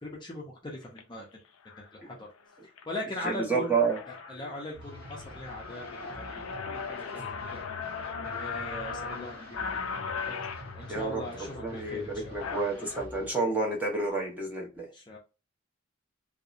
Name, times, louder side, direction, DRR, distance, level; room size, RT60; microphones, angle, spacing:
voice 1, 0.0-1.3 1.8-2.3 2.9-3.7 4.1-5.8 6.2-7.6 8.3-10.4 10.7-12.5 14.9-15.2, left 1 dB, 25° left, 0.5 m, -40 dB
sound 1, 0.8-1.0 1.7-1.9 2.4-2.8 3.3-3.4 3.6-13.0, left 5 dB, 85° left, 0.4 m, -38 dB
voice 2, 3.2-4.0 10.9-11.2 11.6-14.9, right 3 dB, 10° right, 0.8 m, -29 dB
sound 2, 4.7-13.3, left 1 dB, 55° right, 0.9 m, -47 dB
2.7 x 2.0 x 2.4 m
head